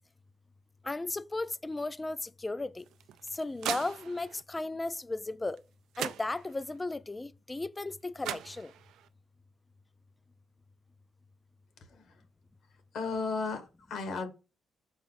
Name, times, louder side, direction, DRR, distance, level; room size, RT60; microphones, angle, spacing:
voice 1, 0.8-2.9 3.3-5.6 6.0-8.7, left 2 dB, 15° left, 0.3 m, -35 dB
sound 1, 2.8-4.4 5.6-5.7 5.9-6.8 7.9-8.0 8.2-9.1, right 11 dB, 90° right, 0.4 m, -39 dB
voice 2, 11.9-12.2 12.9-14.3, left 4 dB, 70° left, 1.3 m, -35 dB
6.0 x 4.3 x 3.9 m
cardioid pair, 115°, 0 cm